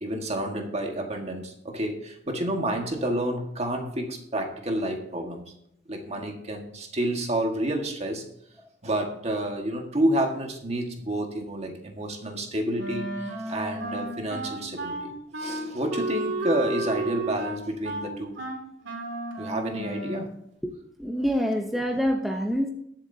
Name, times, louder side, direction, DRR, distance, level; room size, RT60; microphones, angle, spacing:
voice 1, 0.0-5.4 5.9-8.3 8.8-15.1 15.4-18.4 19.4-20.3, right 1 dB, 35° right, 1.7 m, -29 dB
Wind instrument woodwind instrument, 12.8-20.3, right 1 dB, 75° right, 2.6 m, -32 dB
voice 2, 21.0-22.7, equal, ahead, 0.8 m, -26 dB
21.0 x 7.5 x 2.8 m
head